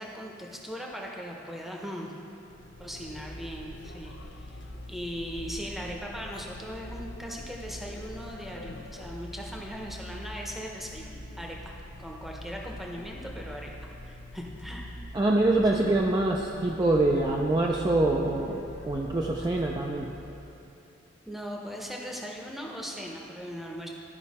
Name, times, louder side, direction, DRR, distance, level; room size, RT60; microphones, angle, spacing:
voice 1, 0.0-2.1 2.8-13.7 14.1-15.1 15.7-15.8 21.3-23.9, equal, ahead, -1 dB, 0.7 m, -39 dB
sound 1, 2.4-20.6, left 1 dB, 70° left, 0.6 m, -44 dB
voice 2, 15.1-20.1, right 2 dB, 20° right, -1 dB, 0.4 m, -25 dB
12.0 x 5.5 x 4.2 m, 2.9 s
head